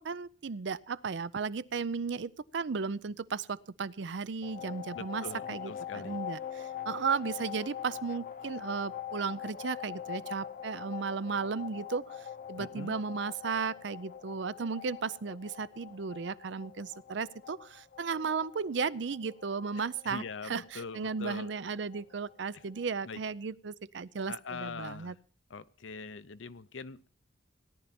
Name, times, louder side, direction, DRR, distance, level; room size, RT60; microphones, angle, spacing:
voice 1, 0.0-25.1, right 5 dB, 65° right, 18 dB, 0.5 m, -35 dB
sound 1, 4.4-23.0, left 9 dB, 50° left, 0.8 m, -44 dB
voice 2, 4.9-6.2 12.6-12.9 19.8-21.5 23.0-23.2 24.3-25.2 25.5-27.1, left 4 dB, 80° left, 14 dB, 0.7 m, -43 dB
17.5 x 11.0 x 4.3 m, 0.40 s
head